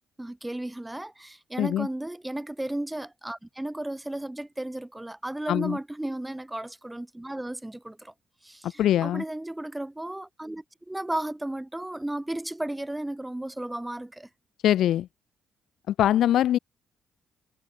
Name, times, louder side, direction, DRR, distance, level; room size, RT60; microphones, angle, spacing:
voice 1, 0.2-8.1 8.4-14.3, right 1 dB, 10° right, 5.2 m, -34 dB
voice 2, 1.6-1.9 5.5-5.8 8.6-9.2 14.6-15.1 15.9-16.6, left 12 dB, 75° left, 3.8 m, -23 dB
cardioid pair, 90°, 0 cm